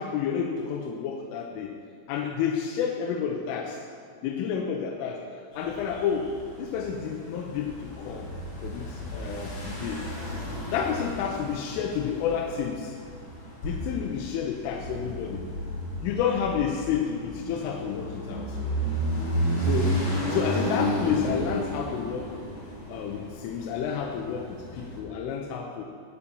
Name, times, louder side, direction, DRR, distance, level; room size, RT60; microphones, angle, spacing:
voice 1, 0.0-1.8 2.1-3.8 4.2-5.2 5.5-6.3 6.6-8.3 8.6-10.0 10.7-13.0 13.6-15.5 16.0-18.6 19.6-22.4 22.9-25.8, left 7 dB, 85° left, 0 dB, 3.3 m, -30 dB
sound 1, 5.5-25.0, right 1 dB, 45° left, 3.8 m, -33 dB
15.5 x 8.9 x 5.6 m, 2.2 s
omnidirectional pair, 5.9 m